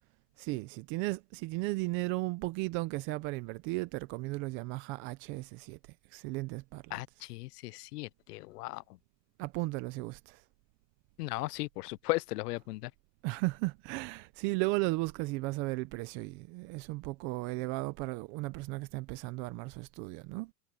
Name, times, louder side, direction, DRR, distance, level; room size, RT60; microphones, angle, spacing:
voice 1, 0.4-5.8 6.1-7.0 9.4-10.4 13.2-20.5, right 23 dB, 25° right, 0.4 m, -35 dB
voice 2, 6.9-8.8 11.2-12.9, left 20 dB, 70° left, 0.6 m, -36 dB
supercardioid pair, 135°, 49 cm